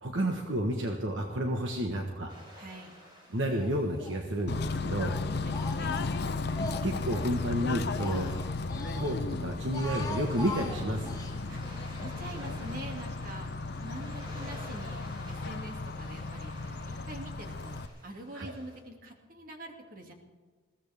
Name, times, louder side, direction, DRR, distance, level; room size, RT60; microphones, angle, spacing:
voice 1, 0.0-2.3 3.3-5.2 6.8-8.3 9.0-11.2 18.3-18.5, equal, 60° right, 2 dB, 1.5 m, -31 dB
sound 1, 2.3-18.8, equal, 25° right, 4.2 m, -52 dB
voice 2, 2.6-2.9 5.3-6.1 11.5-13.5 13.8-17.8 18.0-20.1, right 1 dB, 40° right, 2 dB, 2.5 m, -45 dB
Speech, 3.5-4.2 4.5-7.3 7.7-9.2 9.6-11.4, left 2 dB, 15° left, 1.3 m, -41 dB
Bird / Train, 4.5-17.9, left 3 dB, 50° left, 0.6 m, -35 dB
21.5 x 16.0 x 3.6 m, 1.4 s
head